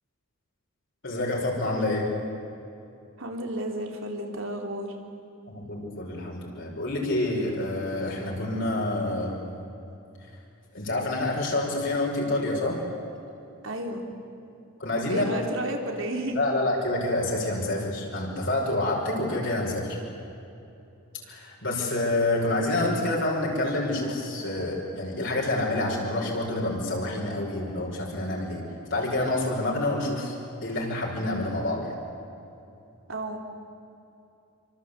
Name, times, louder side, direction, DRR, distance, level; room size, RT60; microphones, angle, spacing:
voice 1, 1.0-2.1 5.5-9.4 10.7-12.8 14.8-15.2 16.4-20.0 21.2-28.6 28.9-30.3 30.6-32.0, left 2 dB, 55° left, -3 dB, 5.4 m, -27 dB
voice 2, 3.2-5.0 13.6-14.0 15.1-16.4 33.1-33.4, right 1 dB, 60° right, 3 dB, 3.7 m, -32 dB
28.0 x 25.0 x 8.4 m, 2.8 s
head